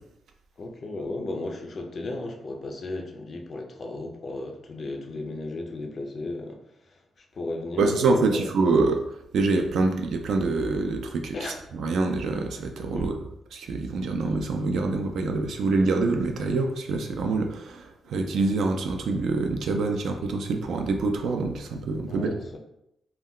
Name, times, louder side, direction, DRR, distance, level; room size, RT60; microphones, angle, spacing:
voice 1, 0.6-6.6 7.3-8.1 8.3-8.5 11.3-11.6 12.9-13.1 18.0-18.1 22.1-22.6, left 2 dB, 35° left, 3 dB, 0.4 m, -35 dB
voice 2, 7.8-9.0 9.3-11.3 11.8-13.2 13.5-22.3, right 3 dB, 65° right, 5 dB, 0.3 m, -25 dB
2.2 x 2.2 x 3.6 m, 0.81 s
wide cardioid pair, 175°, 0 cm